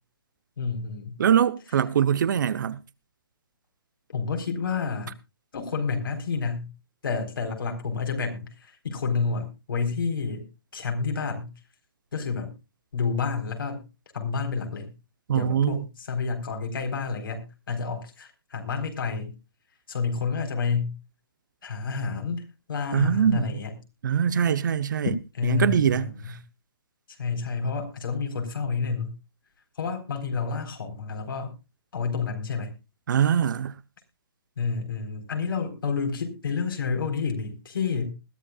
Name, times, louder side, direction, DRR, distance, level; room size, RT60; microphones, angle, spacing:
voice 1, 0.6-1.2 4.1-5.1 5.5-6.7 7.0-11.5 12.1-12.5 12.9-13.8 14.1-14.9 15.3-19.3 19.9-20.9 21.6-23.7 25.3-26.3 27.1-29.1 29.8-31.5 31.9-32.7 34.6-38.1, left 5 dB, 70° left, 4.0 m, -29 dB
voice 2, 1.2-2.8 15.3-15.8 22.9-23.5 24.0-25.1 25.5-26.4 33.1-33.7, right 8 dB, 55° right, 0.8 m, -23 dB
20.5 x 12.0 x 2.3 m
hypercardioid pair, 140°, 12 cm